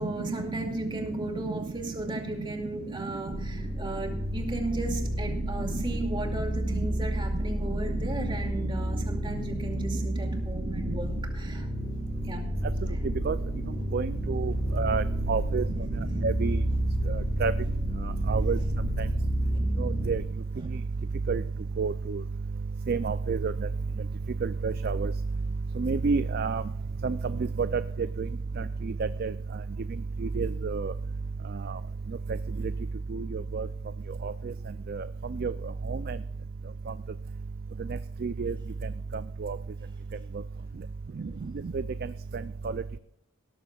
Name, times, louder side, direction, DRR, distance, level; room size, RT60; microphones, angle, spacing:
voice 1, 0.0-11.7 12.2-12.5, right 2 dB, 25° right, 2 dB, 2.4 m, -36 dB
sound 1, 3.3-20.2, equal, 10° left, 4.8 m, -31 dB
voice 2, 13.9-15.6 16.2-16.6 17.1-17.5 18.3-18.6 19.0-19.1 19.8-20.2 21.3-21.4 21.8-22.2 22.9-23.5 24.4-25.1 25.8-26.6 27.0-27.2 27.6-27.8 29.0-29.3 30.4-30.9 33.1-33.7 34.2-34.3 34.9-35.0 35.4-35.5 35.9-36.2 38.2-38.5 39.4-39.6, right 4 dB, 50° right, 14 dB, 0.4 m, -28 dB
18.5 x 13.5 x 2.4 m, 0.75 s
head